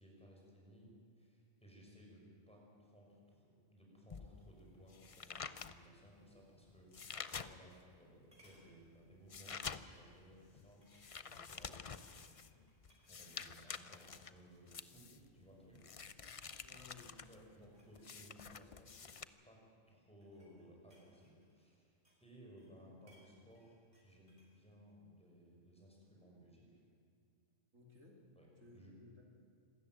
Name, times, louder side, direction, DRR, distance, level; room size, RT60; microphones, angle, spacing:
voice 1, 0.0-12.3 13.1-15.9 17.3-19.1 19.4-26.8 28.4-28.5 28.7-29.0, equal, 5° left, -2 dB, 5.9 m, -61 dB
sound 1, 4.1-7.9 8.4-19.2, left 5 dB, 45° left, 0.4 m, -49 dB
sound 2, 7.6-8.0 8.3-8.7 9.2-9.5 9.8-9.9 10.8-11.5 11.8-13.5 13.9-14.2 14.6-15.1 15.6-15.9 16.1-16.7 17.5-19.1 19.9-22.3 22.6-24.6 24.9-25.0, equal, 30° right, 5.2 m, -72 dB
voice 2, 16.6-17.3 27.7-28.3 28.6-29.3, left 2 dB, 65° right, -1 dB, 3.4 m, -59 dB
26.0 x 13.5 x 9.4 m, 2.3 s
omnidirectional pair, 1.4 m